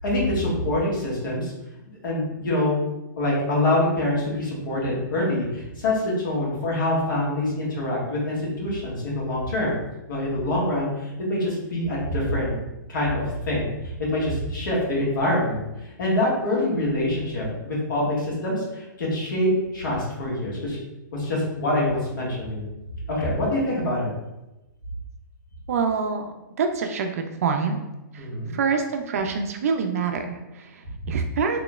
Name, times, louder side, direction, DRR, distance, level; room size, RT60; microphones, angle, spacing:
voice 1, 0.0-1.5 2.0-2.8 3.2-9.8 10.1-12.6 12.9-13.7 14.0-15.6 16.0-20.8 21.1-22.7 23.1-24.1 28.2-28.5, left 1 dB, 75° left, -5 dB, 1.5 m, -25 dB
voice 2, 25.7-27.8 28.1-28.3 28.5-31.6, right 5 dB, 45° right, 4 dB, 0.3 m, -26 dB
3.9 x 2.9 x 2.3 m, 0.99 s
hypercardioid pair, 170°, 11 cm